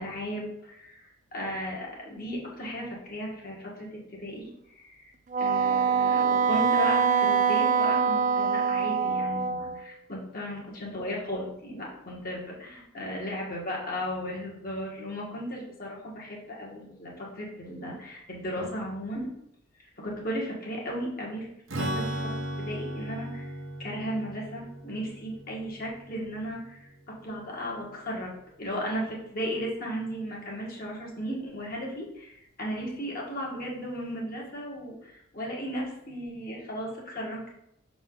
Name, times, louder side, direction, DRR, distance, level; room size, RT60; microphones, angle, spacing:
voice 1, 0.0-5.1 5.4-19.3 20.0-23.5 23.8-37.6, equal, 45° left, -4 dB, 1.7 m, -35 dB
Wind instrument woodwind instrument, 5.3-9.8, right 6 dB, 40° right, 0.4 m, -24 dB
Strum, 21.7-27.3, right 1 dB, 70° right, 1.0 m, -36 dB
6.3 x 4.0 x 3.9 m, 0.80 s
head